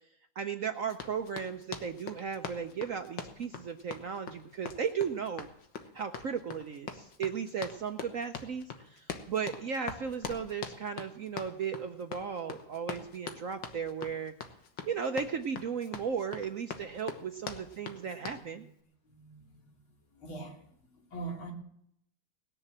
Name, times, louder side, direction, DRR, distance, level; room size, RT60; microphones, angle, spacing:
voice 1, 0.4-5.5 5.9-14.3 14.8-18.7, right 6 dB, 65° right, 0.8 m, -36 dB
Run, 0.9-18.5, left 6 dB, 70° left, 2.0 m, -43 dB
voice 2, 19.1-19.8 20.2-20.6 20.9-21.5, right 3 dB, 90° left, 3.9 m, -43 dB
19.5 x 7.0 x 7.4 m
omnidirectional pair, 2.2 m